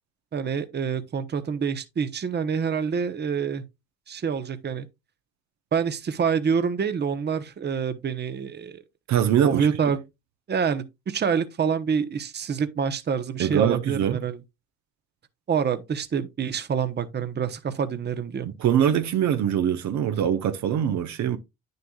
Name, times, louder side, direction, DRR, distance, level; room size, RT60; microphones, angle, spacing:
voice 1, 0.3-3.6 4.1-4.9 5.7-8.8 9.4-10.0 10.5-14.4 15.5-18.5, right 6 dB, 35° right, 0.9 m, -26 dB
voice 2, 9.1-9.7 13.4-14.2 18.4-21.4, right 9 dB, 70° right, 0.9 m, -23 dB
9.4 x 6.7 x 2.3 m
cardioid pair, 85°, 29 cm